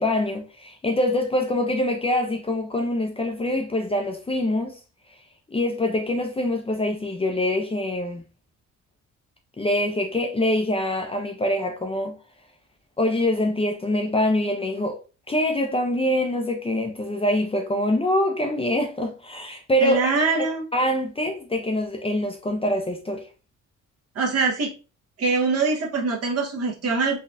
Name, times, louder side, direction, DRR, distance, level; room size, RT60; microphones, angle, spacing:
voice 1, 0.0-4.8 5.5-8.2 9.6-12.1 13.0-15.0 15.3-20.1 20.7-23.2, left 1 dB, 20° left, 0.6 m, -24 dB
voice 2, 19.8-20.6 24.1-24.7 25.2-27.2, right 4 dB, 55° right, 1.2 m, -23 dB
3.9 x 2.3 x 2.6 m
cardioid pair, 90°, 30 cm